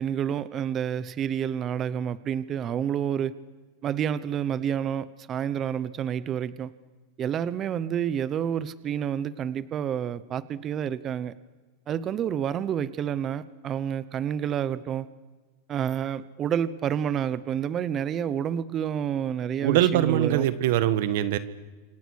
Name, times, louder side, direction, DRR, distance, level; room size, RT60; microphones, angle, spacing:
voice 1, 0.0-3.3 3.8-6.7 7.2-11.3 11.9-15.1 15.7-20.5, right 9 dB, 25° right, 16 dB, 0.9 m, -29 dB
voice 2, 19.6-21.4, right 12 dB, 65° right, 14 dB, 1.5 m, -22 dB
29.5 x 27.0 x 6.5 m, 1.3 s
supercardioid pair, 145°, 0 cm